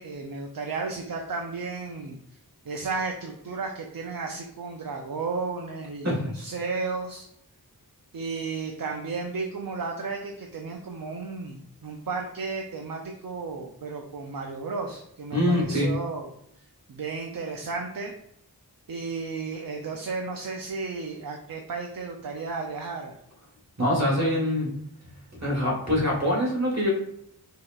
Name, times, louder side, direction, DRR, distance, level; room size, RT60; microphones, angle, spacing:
voice 1, 0.0-2.2 2.6-7.3 8.1-16.3 16.9-18.1 18.9-23.2, right 4 dB, 60° right, 2 dB, 0.5 m, -33 dB
voice 2, 15.3-15.9 23.8-24.7 25.4-26.9, left 1 dB, 45° right, -3 dB, 1.5 m, -24 dB
4.9 x 2.8 x 2.3 m, 0.74 s
wide cardioid pair, 45°, 39 cm